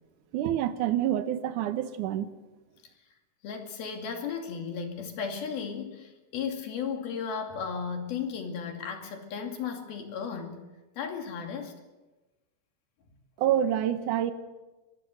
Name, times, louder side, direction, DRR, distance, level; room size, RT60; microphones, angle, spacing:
voice 1, 0.3-2.3 13.4-14.3, right 11 dB, 65° right, 10 dB, 2.4 m, -27 dB
voice 2, 3.4-10.7 11.0-11.7, left 6 dB, 75° left, 4 dB, 4.4 m, -35 dB
23.5 x 22.5 x 6.6 m, 1.1 s
omnidirectional pair, 4.3 m